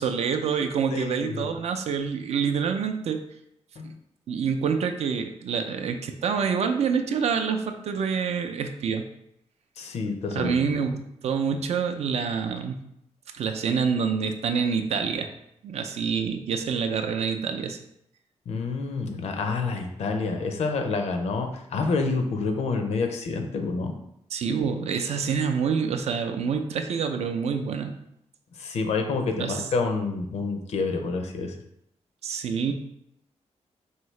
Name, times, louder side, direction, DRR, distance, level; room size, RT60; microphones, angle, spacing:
voice 1, 0.0-3.2 3.8-3.9 4.3-9.0 10.3-12.8 13.3-15.3 15.6-17.8 24.3-27.9 29.4-29.6 32.2-32.7, right 6 dB, 65° right, 6 dB, 0.4 m, -27 dB
voice 2, 0.9-1.5 3.8-4.0 9.8-10.8 18.5-24.0 28.6-31.5, left 4 dB, 65° left, 5 dB, 0.6 m, -28 dB
4.7 x 2.7 x 3.1 m, 0.77 s
wide cardioid pair, 150°, 12 cm